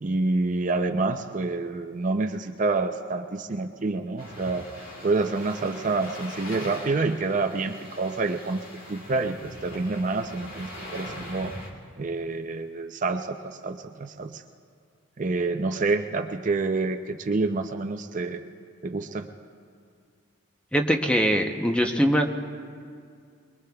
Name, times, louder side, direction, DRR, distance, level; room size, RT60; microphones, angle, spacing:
voice 1, 0.0-4.7 5.0-8.6 8.9-11.6 12.0-14.4 15.2-18.4 18.8-19.3, right 3 dB, 35° right, 6 dB, 0.5 m, -27 dB
sound 1, 4.2-11.7, left 1 dB, 70° left, 2.8 m, -41 dB
voice 2, 20.7-22.3, equal, 5° left, 3 dB, 0.7 m, -22 dB
23.0 x 23.0 x 2.3 m, 2.2 s
head